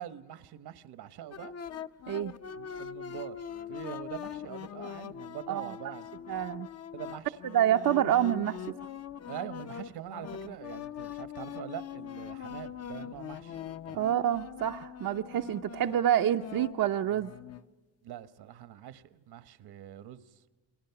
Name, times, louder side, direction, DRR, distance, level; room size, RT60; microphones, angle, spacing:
voice 1, 0.0-1.5 2.6-6.1 6.9-7.3 9.3-13.6 13.9-14.2 18.0-20.3, right 11 dB, 70° right, 1.3 m, -44 dB
sound 1, 1.3-17.6, left 8 dB, 40° left, 0.7 m, -42 dB
voice 2, 5.5-5.9 6.3-6.7 7.5-8.7 14.0-17.3, right 11 dB, 55° right, 0.7 m, -27 dB
29.5 x 22.0 x 5.8 m
cardioid pair, 165°, 40 cm